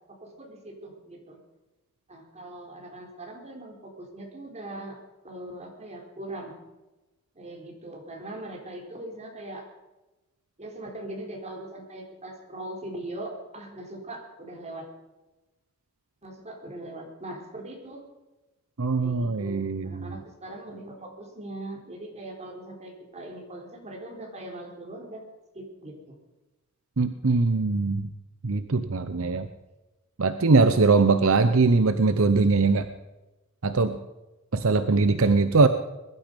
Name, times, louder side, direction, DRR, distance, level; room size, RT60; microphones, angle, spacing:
voice 1, 0.1-1.4 2.1-5.0 5.2-6.6 7.3-9.7 10.6-14.9 16.2-18.1 19.0-25.2 25.5-26.1, right 1 dB, 30° right, 0 dB, 4.0 m, -40 dB
voice 2, 18.8-20.0 27.0-28.1 28.4-29.5 30.2-32.9 33.6-34.0 34.5-35.7, right 3 dB, 70° right, 10 dB, 0.8 m, -21 dB
21.5 x 12.0 x 5.3 m, 1.1 s
head